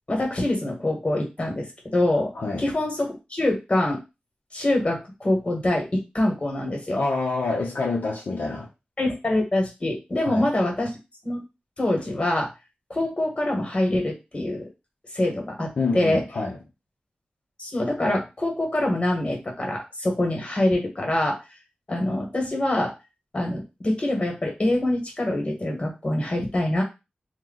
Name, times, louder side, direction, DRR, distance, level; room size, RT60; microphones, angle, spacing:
voice 1, 0.1-2.3 2.6-4.0 4.5-7.0 9.0-10.9 11.2-11.4 11.8-12.5 12.9-14.7 15.1-16.2 17.6-21.4 21.9-22.9 23.3-26.8, left 1 dB, 35° left, 1.3 m, -25 dB
voice 2, 6.9-8.7 10.2-10.5 15.8-16.6, left 3 dB, 65° left, 0.7 m, -27 dB
3.0 x 2.3 x 3.8 m
wide cardioid pair, 90°, 3 cm